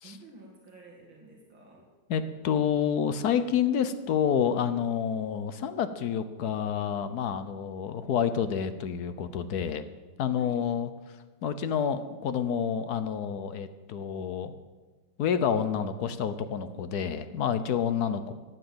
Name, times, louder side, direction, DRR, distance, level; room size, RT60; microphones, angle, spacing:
voice 1, 0.0-1.9 10.4-10.6 17.9-18.0, right 2 dB, 70° right, -2 dB, 3.0 m, -51 dB
voice 2, 2.1-9.8 10.2-10.9 11.4-14.5 15.2-18.3, left 8 dB, 60° left, 11 dB, 1.1 m, -28 dB
13.5 x 9.4 x 7.8 m, 1.3 s
omnidirectional pair, 2.3 m